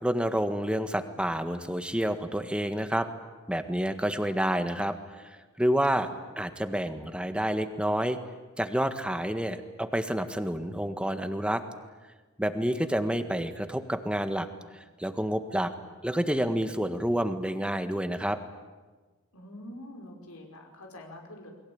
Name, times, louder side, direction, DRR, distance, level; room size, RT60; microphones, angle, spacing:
voice 1, 0.0-3.1 3.5-5.2 5.6-6.1 6.4-8.2 8.6-11.6 12.4-14.5 14.7-15.7 16.0-18.4, equal, 5° right, 8 dB, 1.6 m, -29 dB
voice 2, 19.3-21.5, left 1 dB, 85° left, 1 dB, 5.3 m, -45 dB
29.0 x 22.5 x 8.8 m, 1.3 s
head